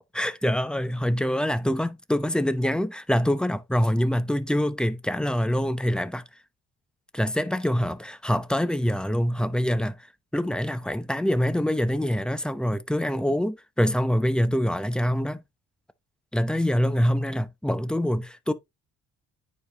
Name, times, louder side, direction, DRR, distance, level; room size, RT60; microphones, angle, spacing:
voice 1, 0.1-6.2 7.1-9.9 10.3-15.4 16.3-18.5, equal, 5° left, 0.8 m, -25 dB
9.3 x 5.1 x 2.9 m
cardioid pair, 90°, 30 cm